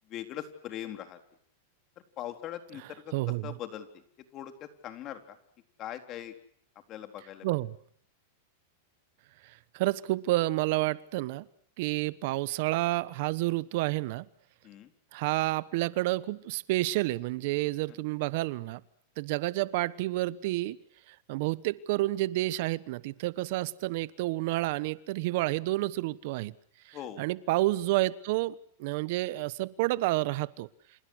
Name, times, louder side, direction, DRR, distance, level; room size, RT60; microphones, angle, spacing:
voice 1, 0.1-1.2 2.2-3.1 3.4-4.0 4.3-5.4 5.8-6.3 6.9-7.5 14.6-14.9 17.9-18.0 26.9-27.2, left 11 dB, 40° left, 7 dB, 3.9 m, -41 dB
voice 2, 3.1-3.5 7.4-7.7 9.7-11.4 11.8-14.2 15.1-18.8 19.2-20.8 21.3-26.5 26.9-30.7, right 18 dB, 60° right, 18 dB, 1.1 m, -29 dB
28.5 x 28.0 x 6.4 m, 0.63 s
hypercardioid pair, 120°, 0 cm